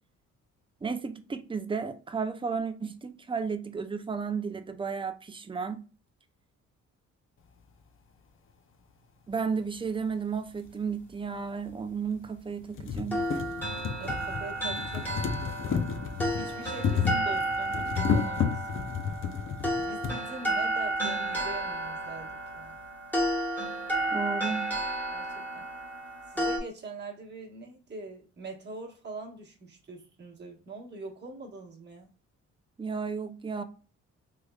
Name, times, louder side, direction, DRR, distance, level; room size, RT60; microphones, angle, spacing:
voice 1, 0.8-5.8 9.3-13.3 24.1-24.7 32.8-33.6, right 5 dB, 15° right, 0.5 m, -33 dB
sound 1, 10.6-10.7 11.7-11.8 12.2-12.3 12.6-20.2 21.1-21.2 21.4-21.5, left 6 dB, 45° left, 0.6 m, -32 dB
sound 2, 13.1-26.6, right 1 dB, 5° left, 1.3 m, -32 dB
voice 2, 14.0-15.7 16.1-18.7 19.8-22.8 25.1-25.7 26.3-32.1, right 3 dB, 35° right, 1.2 m, -43 dB
3.3 x 3.2 x 2.3 m
cardioid pair, 90°, 30 cm